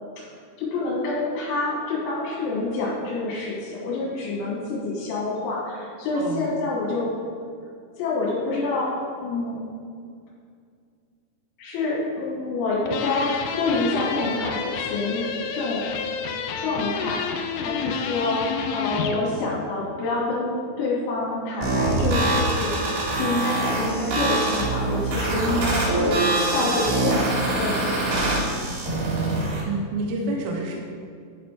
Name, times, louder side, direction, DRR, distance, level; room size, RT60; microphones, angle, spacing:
voice 1, 0.6-7.1 8.0-8.9 9.2-9.6 11.6-15.9 16.5-26.2 26.5-28.3, left 2 dB, 60° left, -5 dB, 4.0 m, -27 dB
voice 2, 6.1-6.5 29.7-30.8, right 2 dB, 85° right, -1 dB, 3.6 m, -28 dB
sound 1, 12.9-19.2, left 6 dB, 85° left, 3.2 m, -30 dB
sound 2, 21.6-29.6, right 2 dB, 65° right, 2.2 m, -24 dB
12.0 x 4.3 x 4.5 m, 2.2 s
omnidirectional pair, 5.9 m